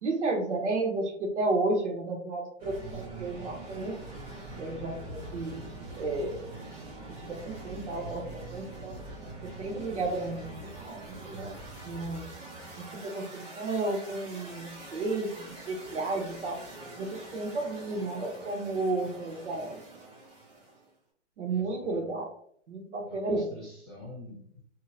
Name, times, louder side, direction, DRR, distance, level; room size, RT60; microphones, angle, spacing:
voice 1, 0.0-4.2 4.6-5.7 6.0-6.4 7.2-8.2 8.5-8.9 9.6-11.0 11.2-11.5 11.8-12.2 12.8-16.6 17.0-19.8 21.4-22.3 22.7-23.5, right 2 dB, 75° right, 1 dB, 0.9 m, -32 dB
sound 1, 2.6-20.9, right 2 dB, 55° right, 1.2 m, -44 dB
voice 2, 21.5-22.1 23.0-24.6, left 1 dB, ahead, -24 dB, 0.5 m, -46 dB
2.7 x 2.0 x 2.7 m, 0.64 s
hypercardioid pair, 180°, 35 cm